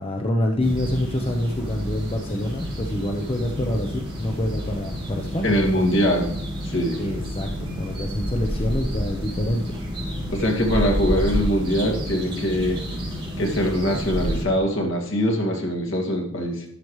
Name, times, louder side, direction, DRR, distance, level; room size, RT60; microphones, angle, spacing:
voice 1, 0.0-6.2 7.0-9.8, left 1 dB, 30° left, 2 dB, 0.8 m, -27 dB
sound 1, 0.6-14.4, equal, 25° right, 4.0 m, -29 dB
voice 2, 5.4-6.3 6.7-7.0 10.3-12.8 13.4-16.6, equal, 65° left, -1 dB, 2.2 m, -22 dB
12.5 x 7.0 x 3.2 m, 0.81 s
head